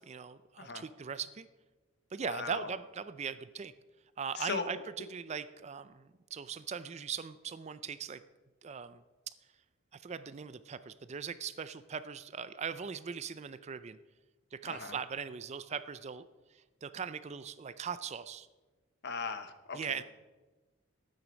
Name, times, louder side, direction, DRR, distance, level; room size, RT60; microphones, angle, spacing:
voice 1, 0.0-1.5 2.1-3.7 4.2-8.2 8.6-9.0 9.9-14.0 14.5-16.3 16.5-18.5 19.7-20.0, right 6 dB, 30° right, 13 dB, 0.4 m, -40 dB
voice 2, 2.2-2.7 4.4-4.7 14.7-14.9 19.0-20.0, left 4 dB, 50° left, 10 dB, 0.9 m, -38 dB
13.0 x 9.1 x 5.2 m, 1.2 s
head